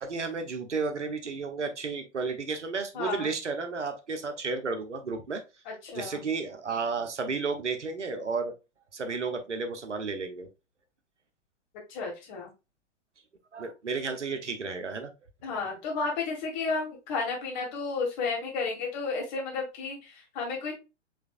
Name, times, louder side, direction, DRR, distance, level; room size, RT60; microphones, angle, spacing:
voice 1, 0.0-5.4 5.9-8.5 8.9-10.5 13.5-15.1, right 4 dB, 80° right, 6 dB, 1.0 m, -32 dB
voice 2, 2.9-3.3 5.7-6.2 11.9-12.5 15.4-20.7, left 4 dB, 40° left, 1 dB, 1.9 m, -32 dB
4.9 x 3.5 x 2.4 m, 0.27 s
figure-of-eight pair, 110°, 35 cm